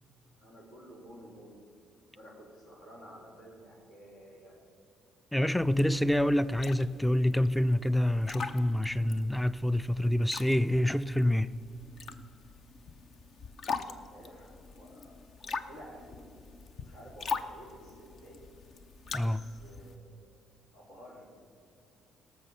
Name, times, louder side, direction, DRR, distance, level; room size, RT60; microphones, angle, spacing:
voice 1, 0.4-1.7 2.1-4.6 13.6-16.4 16.8-18.5 19.2-20.4 20.7-21.3, equal, 85° left, 3.7 m, -52 dB
voice 2, 5.3-11.5 19.1-19.4, left 1 dB, 5° left, 0.4 m, -27 dB
sound 1, 5.5-20.0, left 4 dB, 55° left, 0.7 m, -43 dB
18.0 x 6.7 x 5.6 m
hypercardioid pair, 55°, 0 cm